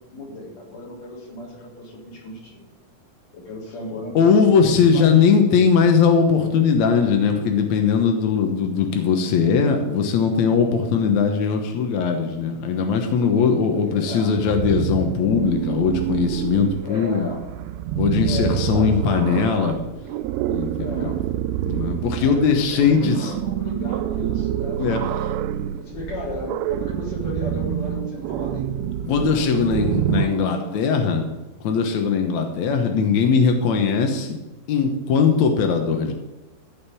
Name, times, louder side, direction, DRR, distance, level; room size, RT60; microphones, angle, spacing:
voice 1, 0.0-2.6 3.3-5.3 13.7-14.3 16.8-17.5 18.2-19.0 20.8-21.2 22.2-28.8 29.2-31.0, left 2 dB, 40° left, -4 dB, 4.8 m, -35 dB
voice 2, 4.2-17.3 18.0-19.8 20.5-21.2 21.6-23.3 24.8-25.0 29.1-31.3 31.6-34.4 34.7-36.1, left 6 dB, 70° left, 4 dB, 1.7 m, -20 dB
sound 1, 14.4-30.3, right 12 dB, 85° right, 2.5 m, -27 dB
14.5 x 5.1 x 8.3 m, 1.1 s
omnidirectional pair, 4.7 m